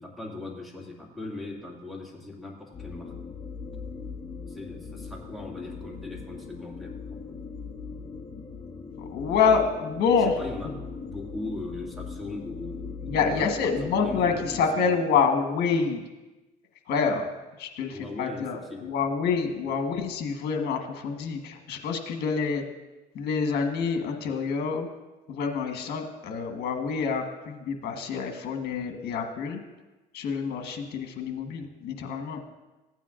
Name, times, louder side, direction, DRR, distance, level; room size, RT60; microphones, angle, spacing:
voice 1, 0.0-3.1 4.5-7.5 10.4-10.7 11.0-15.2 17.9-19.0 19.6-19.8, left 2 dB, ahead, -4 dB, 2.1 m, -39 dB
sound 1, 2.7-14.6, left 5 dB, 25° left, 1.0 m, -40 dB
voice 2, 9.0-10.4 13.0-16.0 16.9-17.3 17.6-22.6 23.1-24.9 25.3-29.6 30.1-32.4, left 5 dB, 70° left, 4 dB, 1.3 m, -27 dB
15.5 x 9.2 x 2.5 m, 1.1 s
cardioid pair, 110°, 17 cm